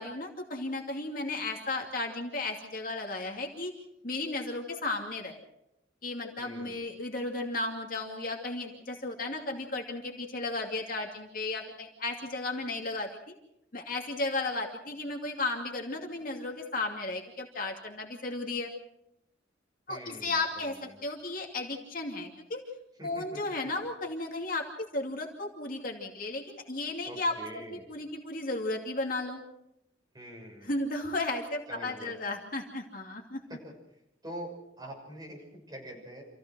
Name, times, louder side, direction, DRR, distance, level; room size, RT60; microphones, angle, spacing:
voice 1, 0.0-3.7 4.0-5.4 6.0-13.4 13.7-18.7 19.9-22.6 23.0-27.4 27.7-29.4 30.6-33.4, left 2 dB, 50° left, 1 dB, 2.6 m, -34 dB
voice 2, 6.4-6.9 19.9-21.0 23.0-23.4 27.0-28.0 30.1-30.7 31.7-32.2 33.5-33.7 34.2-36.2, right 1 dB, 20° right, -1 dB, 6.7 m, -45 dB
27.5 x 16.0 x 6.3 m, 0.81 s
head